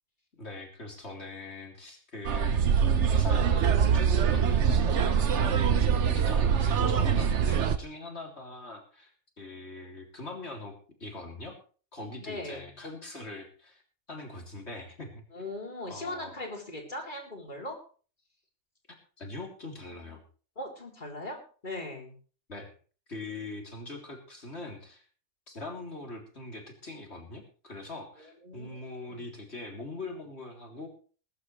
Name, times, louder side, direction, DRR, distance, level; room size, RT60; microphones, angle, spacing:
voice 1, 0.3-2.7 3.1-10.7 11.0-11.5 11.9-13.8 14.1-15.5 15.9-16.3 19.2-20.2 22.5-22.7 23.1-25.0 25.5-30.9, left 2 dB, 50° left, 1 dB, 3.8 m, -42 dB
sound 1, 2.2-7.8, right 7 dB, 60° right, 1.2 m, -24 dB
voice 2, 12.2-12.8 15.3-17.8 20.6-22.2 28.2-29.3, left 1 dB, 35° left, -1 dB, 4.2 m, -40 dB
21.5 x 11.5 x 3.3 m, 0.40 s
omnidirectional pair, 1.5 m